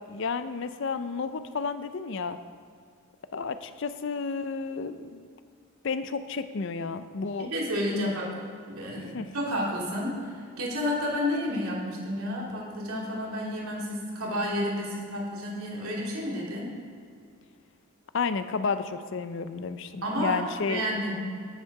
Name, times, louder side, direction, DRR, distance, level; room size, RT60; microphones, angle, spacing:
voice 1, 0.1-2.4 3.3-5.3 5.8-7.5 7.9-8.1 9.1-9.3 18.1-20.8, left 5 dB, 55° left, 11 dB, 0.5 m, -31 dB
voice 2, 7.4-8.3 8.7-16.8 20.0-20.4 20.7-21.1, equal, 75° right, -3 dB, 2.8 m, -31 dB
10.0 x 10.0 x 4.8 m, 2.3 s
head